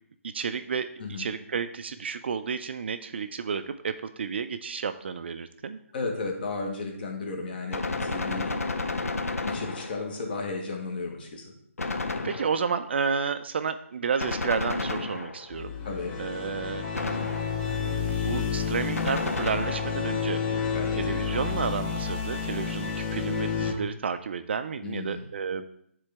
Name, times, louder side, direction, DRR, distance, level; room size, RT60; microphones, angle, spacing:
voice 1, 0.2-5.8 12.2-15.7 16.2-16.9 18.1-20.4 21.0-25.7, right 6 dB, 50° right, 9 dB, 0.4 m, -31 dB
voice 2, 5.9-8.6 9.4-11.5 15.8-16.2 20.7-21.0 24.8-25.3, left 3 dB, 40° left, 2 dB, 1.4 m, -34 dB
Gunshot gunfire, 7.7-10.2 11.8-12.8 14.2-15.6 16.9-17.8 19.0-20.1, left 3 dB, 85° left, 0.6 m, -32 dB
sound 1, 15.5-23.7, left 6 dB, 15° left, 0.7 m, -30 dB
9.8 x 3.8 x 3.4 m, 0.70 s
figure-of-eight pair, 155°, 8 cm